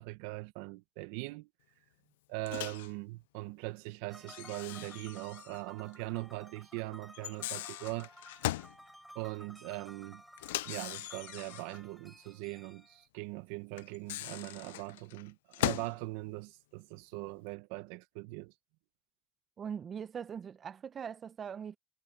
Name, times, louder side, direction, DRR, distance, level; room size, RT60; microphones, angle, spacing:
voice 1, 0.0-1.5 2.3-8.1 9.1-10.2 10.6-18.5, right 21 dB, 85° right, 1.2 m, -41 dB
Microwave oven, 2.5-2.9 4.3-5.6 5.9-6.0 7.1-8.8 10.4-11.8 13.8-16.0, left 17 dB, 90° left, 0.6 m, -39 dB
sound 1, 4.1-13.1, equal, 5° right, 6.7 m, -55 dB
voice 2, 19.6-21.8, right 7 dB, 55° right, 1.3 m, -41 dB
hypercardioid pair, 50°, 0 cm